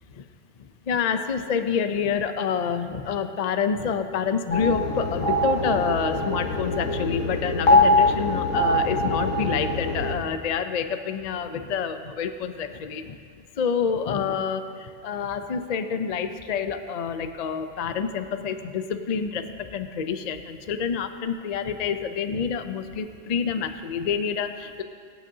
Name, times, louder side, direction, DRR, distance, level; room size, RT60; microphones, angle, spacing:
voice 1, 0.6-13.2 13.6-24.8, left 6 dB, 50° left, 8 dB, 0.5 m, -28 dB
sound 1, 4.5-10.1, left 1 dB, 90° left, 1.6 m, -23 dB
24.0 x 9.1 x 2.8 m, 2.1 s
omnidirectional pair, 1.3 m